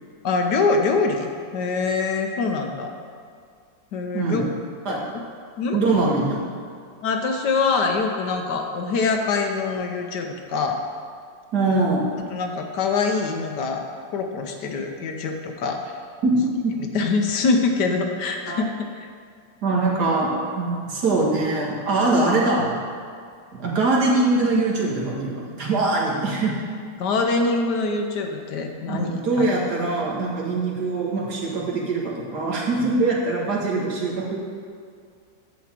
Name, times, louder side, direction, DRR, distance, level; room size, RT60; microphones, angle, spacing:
voice 1, 0.2-2.9 3.9-4.4 4.8-5.2 5.6-5.8 7.0-10.8 12.3-13.9 14.1-15.8 16.9-19.1 27.0-29.5, left 4 dB, 70° left, 3 dB, 1.4 m, -24 dB
voice 2, 4.1-4.5 4.9-5.1 5.7-6.5 11.5-12.1 16.2-16.4 16.6-16.7 18.5-18.6 19.6-22.8 23.5-26.6 28.9-34.4, right 3 dB, 65° right, -3 dB, 2.1 m, -22 dB
10.5 x 4.2 x 7.4 m, 2.2 s
omnidirectional pair, 2.0 m